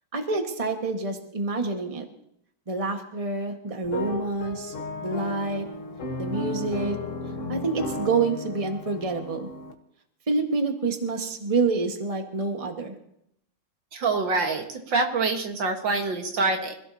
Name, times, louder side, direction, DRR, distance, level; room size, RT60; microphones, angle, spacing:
voice 1, 0.1-2.0 2.7-4.7 5.0-5.7 6.2-7.0 7.5-9.5 10.3-13.0, right 3 dB, 20° right, 4 dB, 1.5 m, -27 dB
sound 1, 3.8-9.7, left 2 dB, 45° left, 1.5 m, -34 dB
voice 2, 13.9-16.8, right 3 dB, 70° right, 4 dB, 2.3 m, -25 dB
25.5 x 16.5 x 2.9 m, 0.74 s
omnidirectional pair, 2.1 m